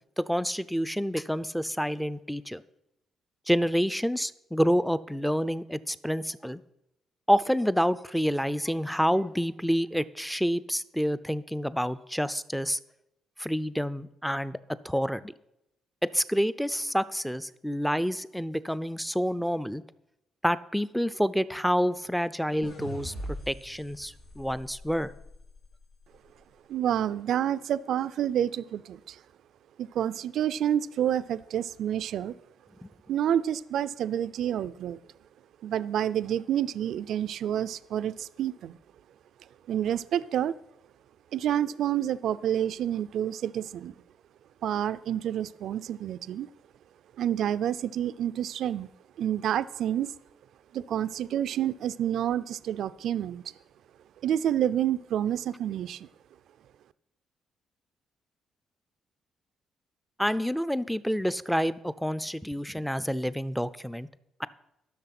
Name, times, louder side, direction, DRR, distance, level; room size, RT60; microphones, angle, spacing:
voice 1, 0.2-2.6 3.5-6.6 7.3-12.8 13.4-14.6 14.8-15.3 16.0-19.8 20.4-25.1 60.2-64.1 64.4-64.5, equal, ahead, 16 dB, 0.4 m, -28 dB
sound 1, 22.6-25.9, equal, 85° left, 2.8 m, -42 dB
voice 2, 26.7-29.2 29.8-32.4 33.1-35.0 35.6-38.8 39.7-40.5 41.3-43.9 44.6-46.5 47.2-48.9 49.2-50.1 50.7-53.5 54.2-56.1, right 10 dB, 75° right, 16 dB, 0.3 m, -28 dB
12.0 x 6.4 x 5.9 m, 0.86 s
cardioid pair, 90°, 0 cm